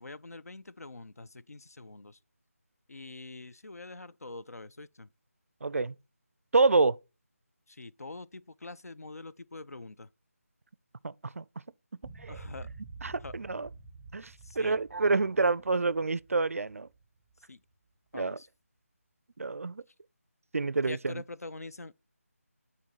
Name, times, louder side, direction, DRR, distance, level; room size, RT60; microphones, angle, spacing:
voice 1, 0.0-2.2 2.9-5.1 7.7-10.1 12.3-12.7 13.2-13.3 14.4-14.8 17.5-17.6 18.1-18.5 20.9-21.9, left 3 dB, 80° left, 0.4 m, -44 dB
voice 2, 5.6-6.0 6.5-7.0 11.0-11.4 12.2-12.4 13.0-13.7 14.1-16.9 18.1-18.4 19.4-19.8 20.5-21.1, right 3 dB, 65° right, 0.4 m, -28 dB
sound 1, 12.0-17.4, right 3 dB, ahead, 0.6 m, -48 dB
8.9 x 4.1 x 3.0 m
figure-of-eight pair, 160°, 8 cm